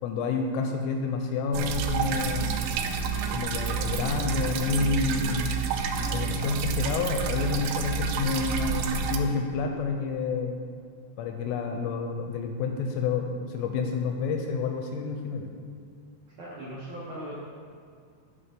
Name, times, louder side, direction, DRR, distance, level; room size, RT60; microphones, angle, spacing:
voice 1, 0.0-2.5 3.3-5.6 6.0-10.6 11.2-15.5, left 4 dB, 85° left, 4 dB, 2.6 m, -29 dB
sound 1, 1.5-9.2, right 6 dB, 90° right, 2.2 m, -29 dB
sound 2, 1.9-7.3, left 1 dB, 40° left, 1.7 m, -41 dB
voice 2, 16.4-17.3, right 1 dB, 70° right, -8 dB, 1.8 m, -38 dB
10.0 x 5.0 x 5.1 m, 2.2 s
omnidirectional pair, 5.2 m